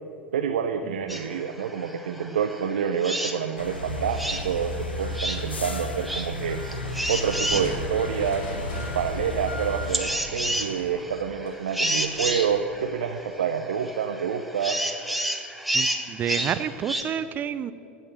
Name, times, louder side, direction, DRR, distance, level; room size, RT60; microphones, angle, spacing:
voice 1, 0.3-6.7 7.1-8.5 8.9-14.8, right 7 dB, 70° right, 6 dB, 0.6 m, -28 dB
sound 1, 1.1-17.0, right 1 dB, ahead, 1.3 m, -32 dB
sound 2, 3.6-10.0, left 1 dB, 85° left, 1.2 m, -33 dB
Crushing, 7.5-12.9, equal, 45° left, 3.1 m, -41 dB
voice 2, 15.7-17.7, right 9 dB, 30° right, 14 dB, 0.5 m, -29 dB
16.5 x 6.5 x 7.6 m, 2.7 s
figure-of-eight pair, 85°, 6 cm